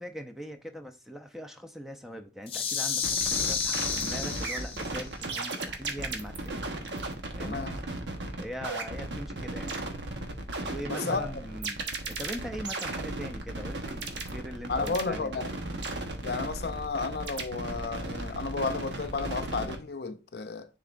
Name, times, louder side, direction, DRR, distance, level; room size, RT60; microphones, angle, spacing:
voice 1, 0.0-6.6 7.3-7.7 8.4-9.8 10.6-15.4, equal, ahead, 0.5 m, -41 dB
sound 1, 2.5-5.0, left 6 dB, 30° left, 0.9 m, -30 dB
sound 2, 3.0-19.8, right 2 dB, 85° right, 1.1 m, -36 dB
voice 2, 7.4-7.7 10.9-11.3 14.7-15.5 16.2-20.7, left 4 dB, 60° left, 0.5 m, -32 dB
10.0 x 3.8 x 2.5 m
head